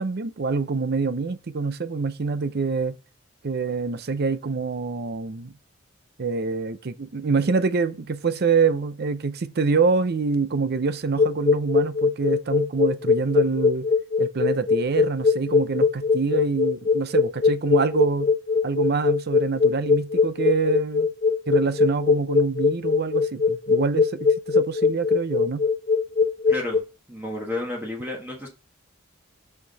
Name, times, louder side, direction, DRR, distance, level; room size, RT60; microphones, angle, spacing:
voice 1, 0.0-2.9 3.4-5.5 6.2-13.9 14.2-18.3 18.6-21.1 21.5-25.6, right 4 dB, 50° right, 0.6 m, -25 dB
sound 1, 11.2-26.8, left 5 dB, 30° left, 0.3 m, -20 dB
voice 2, 26.5-26.8 27.1-28.5, left 2 dB, 10° right, 1.4 m, -31 dB
6.0 x 5.9 x 4.0 m
head